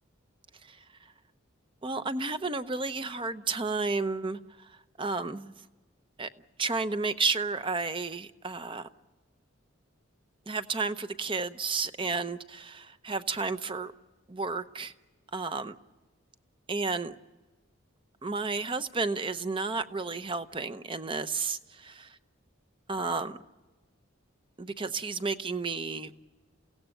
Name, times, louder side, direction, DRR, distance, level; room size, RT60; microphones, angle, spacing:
voice 1, 1.8-5.5 6.2-6.3 6.6-8.9 10.5-13.9 14.3-14.9 15.3-15.7 16.7-17.2 18.2-21.9 22.9-23.4 24.6-26.1, right 4 dB, 25° right, 11 dB, 0.7 m, -32 dB
28.5 x 17.0 x 9.0 m, 1.2 s
head